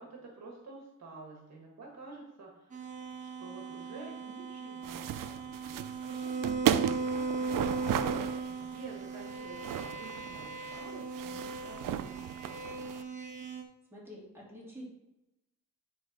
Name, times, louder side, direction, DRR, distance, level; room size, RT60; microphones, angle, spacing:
voice 1, 0.0-7.9 8.5-12.9, right 3 dB, 55° right, 0 dB, 1.5 m, -50 dB
sound 1, 2.7-13.6, right 4 dB, 25° right, 1.1 m, -38 dB
sound 2, 4.8-13.0, right 11 dB, 85° right, 0.5 m, -35 dB
voice 2, 13.9-14.9, equal, 5° right, -6 dB, 2.8 m, -47 dB
9.6 x 3.6 x 4.9 m, 0.94 s
wide cardioid pair, 145°, 32 cm